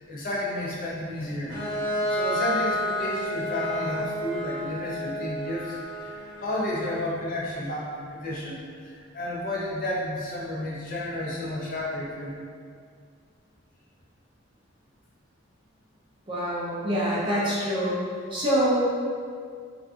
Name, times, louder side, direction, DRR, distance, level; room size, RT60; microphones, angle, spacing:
voice 1, 0.1-1.6 2.1-12.4, left 1 dB, 40° left, -5 dB, 0.4 m, -32 dB
Bowed string instrument, 1.5-7.1, left 1 dB, 80° left, 1.0 m, -30 dB
voice 2, 16.3-18.0 18.3-18.8, equal, 25° right, -7 dB, 0.4 m, -25 dB
2.5 x 2.4 x 2.3 m, 2.1 s
head